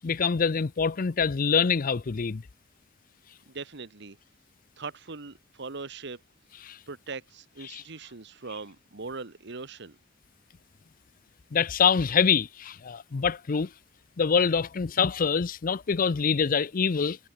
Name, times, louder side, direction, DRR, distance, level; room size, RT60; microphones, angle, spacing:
voice 1, 0.0-2.4 6.7-6.8 7.7-7.8 11.5-13.7 14.2-17.2, left 6 dB, 45° left, 0.5 m, -25 dB
voice 2, 3.5-4.2 4.8-6.2 6.9-10.0, right 4 dB, 60° right, 1.3 m, -40 dB
head